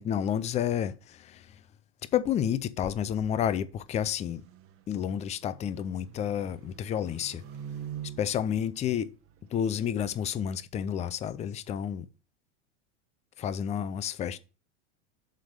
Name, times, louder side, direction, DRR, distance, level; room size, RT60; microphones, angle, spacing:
voice 1, 0.0-1.5 2.1-4.4 4.9-7.4 8.2-9.1 9.5-12.1 13.4-14.4, left 9 dB, 20° left, 0.4 m, -30 dB
sound 1, 4.3-9.8, right 9 dB, 40° right, 1.0 m, -45 dB
7.5 x 3.5 x 6.4 m
supercardioid pair, 120°, 37 cm